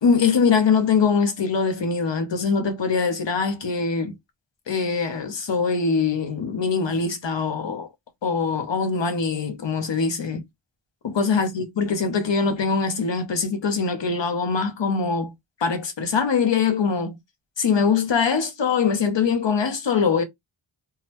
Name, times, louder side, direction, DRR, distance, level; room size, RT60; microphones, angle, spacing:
voice 1, 0.0-4.1 4.7-7.9 8.2-10.4 11.0-15.3 15.6-17.2 17.6-20.2, left 5 dB, 70° left, 0.9 m, -22 dB
3.7 x 2.0 x 2.9 m
cardioid pair, 45°, 47 cm